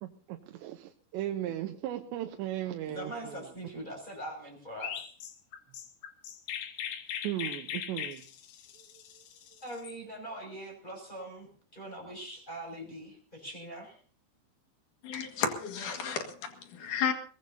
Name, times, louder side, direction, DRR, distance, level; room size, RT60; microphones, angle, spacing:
voice 1, 0.0-3.5 3.7-3.9 7.2-8.3, right 12 dB, 85° right, 5 dB, 3.1 m, -37 dB
voice 2, 2.9-4.9 9.6-14.0, right 1 dB, 10° left, 2 dB, 6.6 m, -42 dB
Chirp tweet, 4.8-10.0, left 9 dB, 80° left, 3.8 m, -40 dB
voice 3, 15.0-17.1, left 7 dB, 55° left, 5 dB, 3.0 m, -32 dB
22.0 x 19.5 x 2.8 m, 0.42 s
omnidirectional pair, 5.1 m